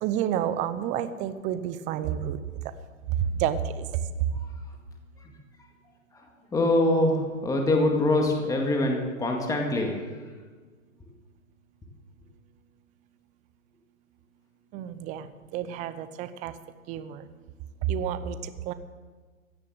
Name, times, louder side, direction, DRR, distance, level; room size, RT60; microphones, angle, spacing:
voice 1, 0.0-2.4 3.4-3.9 14.7-15.3 15.5-16.5 16.9-17.3 17.9-18.7, right 9 dB, 20° right, 12 dB, 0.7 m, -30 dB
voice 2, 6.1-10.2, left 1 dB, 10° left, 1 dB, 2.0 m, -24 dB
16.0 x 11.0 x 7.8 m, 1.5 s
hypercardioid pair, 130°, 42 cm